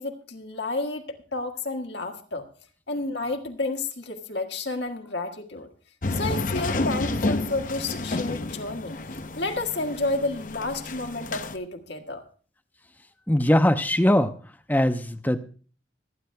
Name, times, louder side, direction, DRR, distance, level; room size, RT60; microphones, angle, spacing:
voice 1, 0.0-2.4 2.9-5.7 6.1-9.0 9.3-12.2, left 2 dB, 75° left, 3 dB, 1.7 m, -31 dB
sound 1, 6.0-11.6, left 2 dB, 45° left, 0.7 m, -30 dB
voice 2, 13.3-14.3 14.7-15.4, left 1 dB, 10° left, 9 dB, 0.7 m, -21 dB
24.5 x 9.9 x 2.3 m, 0.40 s
head